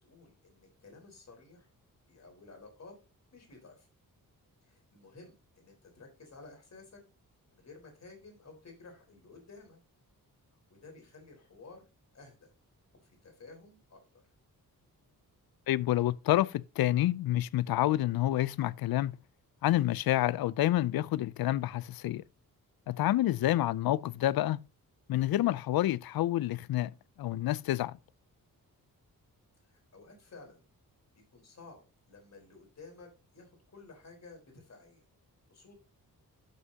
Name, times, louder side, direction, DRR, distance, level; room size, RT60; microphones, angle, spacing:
voice 1, 0.0-1.7 2.1-3.0 3.3-3.9 4.6-7.0 7.5-9.8 10.7-11.8 12.1-12.5 13.0-14.2 29.7-30.6 31.3-31.8 32.1-35.0 35.5-35.7, left 3 dB, 50° left, 4.3 m, -53 dB
voice 2, 15.7-19.2 19.6-22.2 22.9-24.6 25.1-26.9 27.2-28.0, left 14 dB, 85° left, 0.5 m, -28 dB
12.5 x 6.5 x 2.8 m
wide cardioid pair, 135°, 35 cm